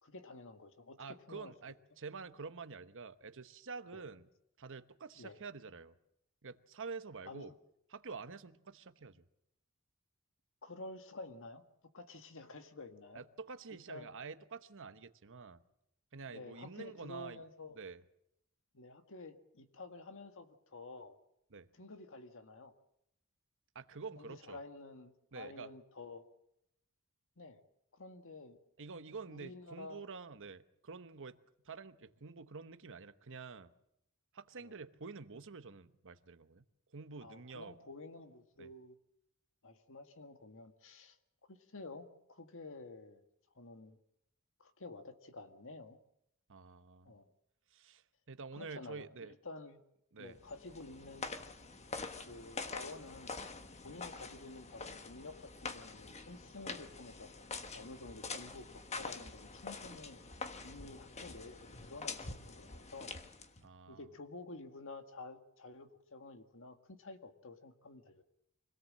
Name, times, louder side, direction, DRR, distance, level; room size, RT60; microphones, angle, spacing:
voice 1, 0.0-1.5 3.9-4.0 5.2-5.4 7.3-7.5 10.6-11.6 11.9-13.2 13.9-14.1 16.3-17.8 18.7-21.2 21.7-22.7 24.2-26.3 27.4-27.6 27.9-28.6 29.3-30.0 34.6-34.7 37.2-39.0 39.6-41.2 41.5-43.2 43.6-44.0 44.6-46.0 47.1-47.3 48.5-49.8 50.2-51.3 52.2-53.4 53.8-57.3 57.7-60.2 60.6-63.1 63.9-68.2, left 3 dB, 65° left, 7 dB, 1.8 m, -50 dB
voice 2, 1.0-4.3 4.6-5.9 6.4-7.5 7.9-9.2 13.1-15.6 16.1-17.4 17.8-18.0 21.5-21.7 23.7-24.6 25.3-25.7 28.8-31.4 31.6-33.7 34.3-36.6 36.9-37.7 38.6-38.7 46.5-47.1 47.7-49.4 50.1-50.4 63.6-64.0, right 4 dB, 60° right, 11 dB, 1.1 m, -48 dB
sound 1, 50.4-63.7, left 4 dB, 30° left, 1.3 m, -46 dB
25.0 x 17.5 x 7.6 m, 0.79 s
head